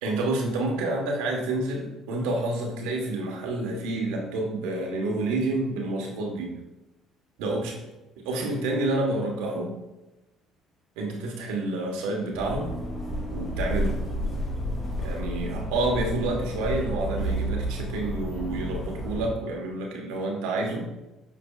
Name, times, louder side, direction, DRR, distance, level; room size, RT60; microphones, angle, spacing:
voice 1, 0.0-6.5 7.4-7.8 8.2-9.7 11.0-12.8 13.3-14.0 15.0-20.9, right 2 dB, 90° right, 0 dB, 1.2 m, -29 dB
sound 1, 12.3-19.3, equal, 45° left, 2.0 m, -31 dB
8.3 x 5.3 x 2.4 m, 1.0 s
supercardioid pair, 90°, 0 cm